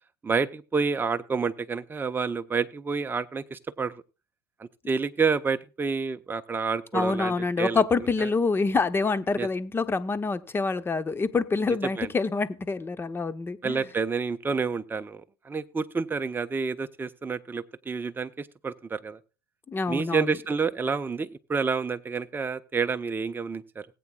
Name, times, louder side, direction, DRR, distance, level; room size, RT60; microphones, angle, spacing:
voice 1, 0.2-3.9 4.6-7.8 8.2-8.3 9.4-9.5 11.8-12.1 13.6-19.2 19.9-23.9, right 5 dB, 15° right, 9 dB, 0.9 m, -29 dB
voice 2, 6.9-13.8 19.7-20.4, left 4 dB, 20° left, 13 dB, 0.9 m, -26 dB
19.0 x 8.5 x 2.3 m, 0.31 s
hypercardioid pair, 95°, 12 cm